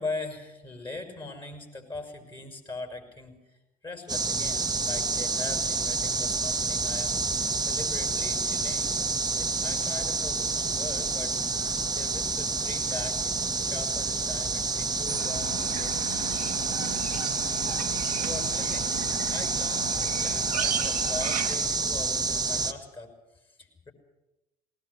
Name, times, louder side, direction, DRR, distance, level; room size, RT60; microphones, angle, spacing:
voice 1, 0.0-9.0 9.3-11.4 11.6-16.0 18.1-19.0 19.3-23.9, left 3 dB, 25° left, 3 dB, 5.4 m, -41 dB
sound 1, 4.1-22.7, right 3 dB, 20° right, 1.5 m, -28 dB
sound 2, 15.1-21.6, right 9 dB, 85° right, 1.7 m, -36 dB
20.0 x 19.5 x 8.2 m, 0.96 s
hypercardioid pair, 55°, 20 cm